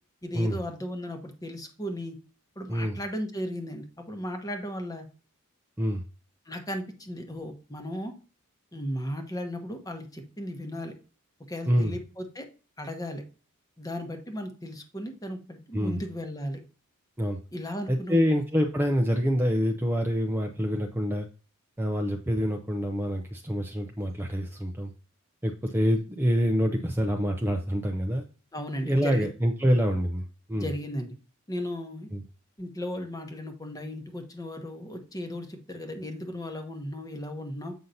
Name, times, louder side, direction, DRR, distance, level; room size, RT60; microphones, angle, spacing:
voice 1, 0.2-2.2 2.6-5.1 6.5-8.1 8.7-10.9 11.5-12.5 12.8-13.2 13.8-16.6 17.5-18.4 28.5-29.3 29.6-29.7 30.5-31.1 31.5-32.1 32.6-37.7, equal, 15° left, 5 dB, 1.0 m, -36 dB
voice 2, 11.7-12.0 15.7-16.0 17.2-17.4 17.9-21.3 21.8-24.9 25.4-28.2 28.8-30.7 32.1-32.2, equal, 10° right, 3 dB, 0.5 m, -26 dB
7.7 x 5.5 x 2.7 m, 0.36 s
head